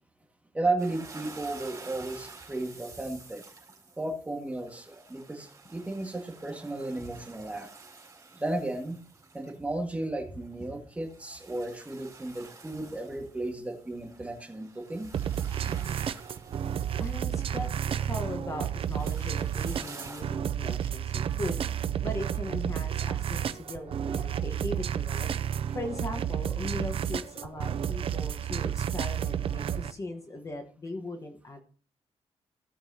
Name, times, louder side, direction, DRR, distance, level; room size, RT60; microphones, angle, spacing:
voice 1, 0.5-3.4 4.0-7.7 8.3-9.0 9.3-15.1, right 2 dB, 10° right, 2 dB, 1.8 m, -34 dB
sound 1, 0.8-10.0 10.4-20.2, right 4 dB, 30° right, 4.4 m, -50 dB
sound 2, 15.1-29.9, right 9 dB, 55° right, 0.5 m, -31 dB
voice 2, 16.7-21.6 22.0-25.3 25.7-31.6, left 1 dB, 30° left, 4 dB, 1.3 m, -39 dB
16.0 x 7.1 x 2.8 m, 0.41 s
wide cardioid pair, 165°, 11 cm